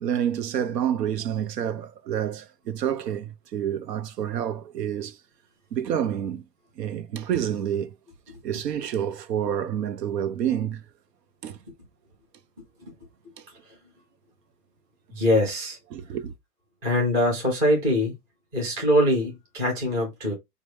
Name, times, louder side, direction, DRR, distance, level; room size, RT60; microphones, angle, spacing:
voice 1, 0.0-5.2 5.7-6.4 6.8-7.9 8.4-10.8 11.4-11.6 13.4-13.5 15.9-16.3, right 9 dB, 90° right, 0.7 m, -28 dB
voice 2, 15.1-15.8 16.8-18.1 18.5-20.3, left 1 dB, 10° right, 0.4 m, -23 dB
4.4 x 2.2 x 3.2 m
hypercardioid pair, 140°, 48 cm